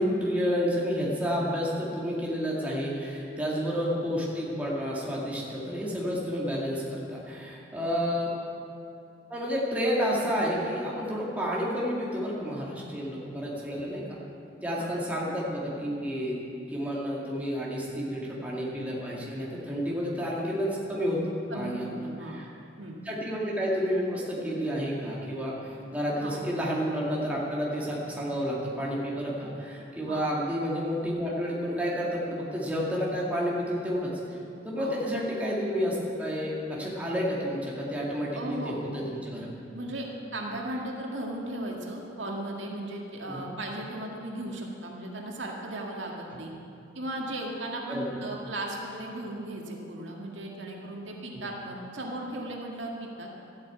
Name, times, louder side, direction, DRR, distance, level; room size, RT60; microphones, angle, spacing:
voice 1, 0.0-8.3 9.3-14.2 14.6-16.4 16.7-21.2 21.5-22.5 23.0-34.4 34.6-39.6 43.3-43.5 47.9-48.2 51.3-51.4, equal, 10° right, -5 dB, 2.2 m, -30 dB
voice 2, 21.5-22.4 22.8-23.0 26.2-26.3 30.1-30.2 34.8-35.0 38.3-38.9 39.7-40.1 40.3-46.5 46.9-53.3, right 1 dB, 80° right, -1 dB, 2.0 m, -36 dB
12.5 x 8.6 x 8.6 m, 2.6 s
head